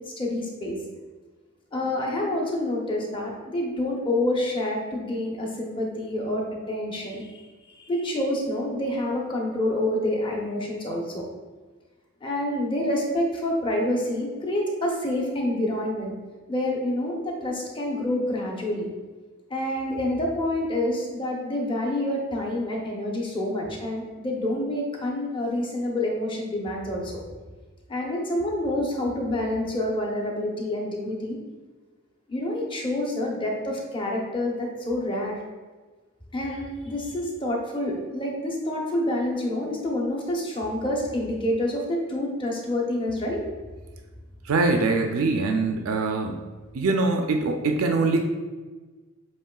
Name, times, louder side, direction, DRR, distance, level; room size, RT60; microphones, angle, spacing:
voice 1, 0.2-0.8 1.7-7.4 7.7-11.2 12.2-16.1 16.5-18.9 19.5-27.2 27.9-31.4 32.3-35.4 36.3-43.4, left 1 dB, 25° left, -1 dB, 0.8 m, -27 dB
voice 2, 44.5-46.4 46.7-48.2, right 3 dB, 75° right, 4 dB, 0.4 m, -23 dB
7.3 x 2.9 x 2.3 m, 1.3 s
head